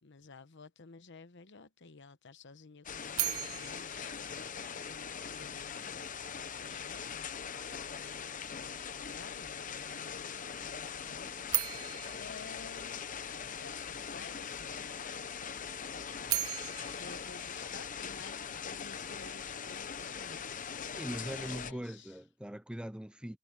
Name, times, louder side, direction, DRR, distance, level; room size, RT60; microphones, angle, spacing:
voice 1, 0.0-4.5 4.8-11.3 12.1-13.1 13.4-15.3 16.0-16.5 17.0-20.5 21.1-22.2, left 4 dB, 60° left, 1.0 m, -53 dB
sound 1, 2.8-21.7, left 7 dB, 40° left, 0.9 m, -41 dB
sound 2, 3.2-5.3 11.5-13.6 16.0-18.4, right 16 dB, 90° right, 0.7 m, -38 dB
sound 3, 10.6-17.0, right 1 dB, 75° right, 6.1 m, -68 dB
voice 2, 21.0-23.4, equal, 5° right, 0.5 m, -41 dB
head